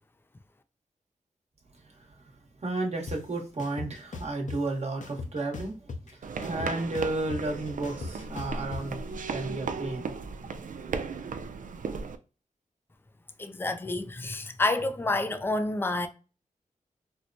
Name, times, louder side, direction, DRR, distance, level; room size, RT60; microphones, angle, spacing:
voice 1, 1.9-2.3 2.6-9.0 9.3-10.1, right 2 dB, 50° right, 1.2 m, -33 dB
sound 1, 3.1-3.2 3.6-4.6 5.0-6.1 6.4-8.8, left 3 dB, 65° left, 0.7 m, -38 dB
sound 2, 6.2-12.2, right 5 dB, 70° right, 0.4 m, -36 dB
voice 2, 13.4-16.1, left 2 dB, 15° left, 0.4 m, -29 dB
4.4 x 2.1 x 2.5 m
wide cardioid pair, 80°, 14 cm